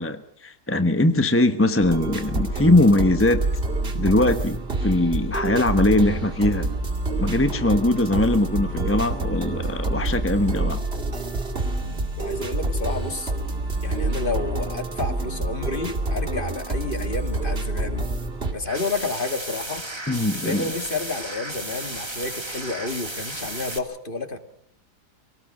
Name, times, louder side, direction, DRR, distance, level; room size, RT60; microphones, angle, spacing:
voice 1, 0.0-3.5 3.9-6.7 7.2-10.8 20.1-20.6, left 1 dB, 10° left, 8 dB, 0.9 m, -21 dB
sound 1, 1.8-18.5, right 2 dB, 35° right, 2.6 m, -27 dB
voice 2, 12.2-13.3 13.8-18.1 18.5-19.8 20.3-24.4, left 3 dB, 30° left, 7 dB, 2.3 m, -30 dB
sound 2, 18.6-23.8, right 1 dB, 15° right, 2.3 m, -34 dB
25.5 x 19.0 x 6.6 m, 0.68 s
omnidirectional pair, 1.8 m